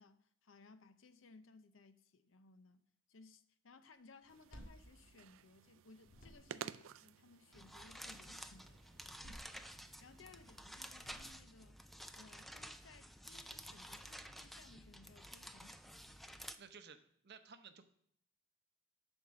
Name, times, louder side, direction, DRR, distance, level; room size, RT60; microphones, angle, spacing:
voice 1, 0.0-2.8 3.1-9.1 9.6-11.8 12.1-16.2, left 3 dB, 80° left, 11 dB, 0.7 m, -62 dB
sound 1, 4.2-5.7 6.0-6.8 8.9-10.2 10.9-11.7, equal, 45° left, 1.6 m, -58 dB
sound 2, 4.3-11.3, right 8 dB, 80° right, 0.4 m, -55 dB
sound 3, 7.5-16.6, equal, ahead, 0.4 m, -52 dB
voice 2, 16.6-17.0 17.2-17.8, right 6 dB, 55° right, 9 dB, 0.8 m, -55 dB
11.0 x 4.5 x 6.3 m, 0.67 s
head